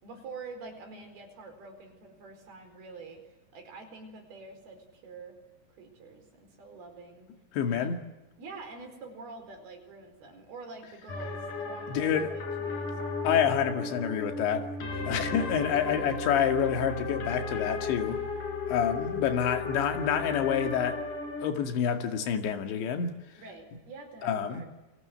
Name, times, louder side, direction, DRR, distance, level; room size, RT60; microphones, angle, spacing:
voice 1, 0.0-5.4 5.8-7.3 7.7-7.9 8.4-13.0 14.9-15.1 23.4-24.7, right 3 dB, 60° right, 6.3 m, -46 dB
voice 2, 7.5-8.0 11.9-12.3 13.2-14.7 15.1-18.2 18.7-21.0 21.4-23.2 24.2-24.6, left 8 dB, 80° left, 4.4 m, -28 dB
sound 1, 11.1-21.5, left 3 dB, 50° left, 5.4 m, -35 dB
29.0 x 25.0 x 7.9 m
omnidirectional pair, 5.1 m